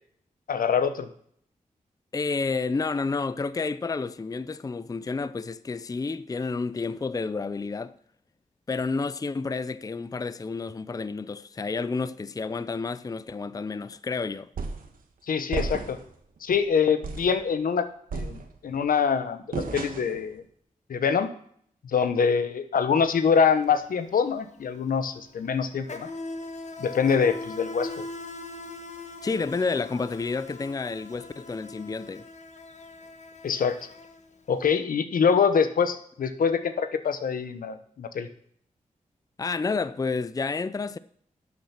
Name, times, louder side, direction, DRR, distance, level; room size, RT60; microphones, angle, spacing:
voice 1, 0.5-1.1 15.3-16.0 16.4-17.8 18.1-20.4 20.9-21.3 21.8-26.1 26.8-27.9 33.4-33.8 34.5-38.3, left 6 dB, 80° left, 0.9 m, -24 dB
voice 2, 2.1-7.9 8.7-14.5 29.2-32.3 39.4-41.0, left 4 dB, 25° left, 0.4 m, -30 dB
sound 1, 14.6-14.9 15.5-16.1 16.5-16.6 17.0-17.4 18.1-18.8 19.5-20.2, right 4 dB, 85° right, 1.3 m, -33 dB
Insect, 23.2-23.4 23.6-34.6, left 2 dB, 55° left, 1.3 m, -41 dB
11.5 x 7.4 x 5.8 m
cardioid pair, 60°, 14 cm